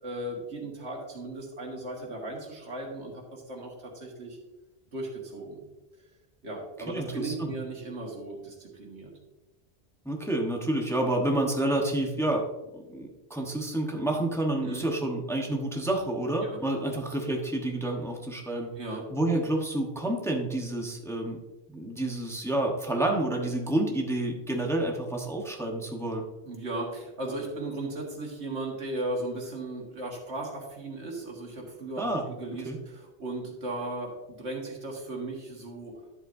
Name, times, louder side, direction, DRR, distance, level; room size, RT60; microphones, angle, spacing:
voice 1, 0.0-4.4 4.9-5.6 6.4-9.1 14.6-14.8 16.4-16.6 16.9-17.0 18.8-19.1 26.4-36.0, right 2 dB, 90° right, -1 dB, 2.1 m, -36 dB
voice 2, 6.9-7.5 10.0-12.4 12.7-18.7 19.1-21.4 21.7-26.3 32.0-32.3 32.6-32.8, right 1 dB, 5° left, 1 dB, 1.1 m, -29 dB
11.0 x 7.5 x 2.7 m, 1.1 s
omnidirectional pair, 1.1 m